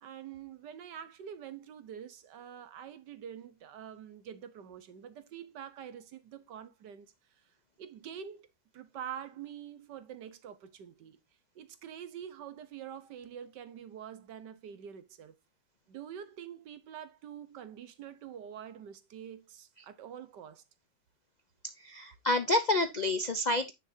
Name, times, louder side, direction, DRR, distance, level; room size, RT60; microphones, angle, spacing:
voice 1, 0.0-7.1 7.8-8.5 8.7-11.2 11.5-15.3 15.9-20.6, right 9 dB, 70° right, 1.6 m, -46 dB
voice 2, 21.6-23.7, left 2 dB, 80° left, 0.4 m, -29 dB
9.8 x 6.5 x 2.7 m
omnidirectional pair, 1.9 m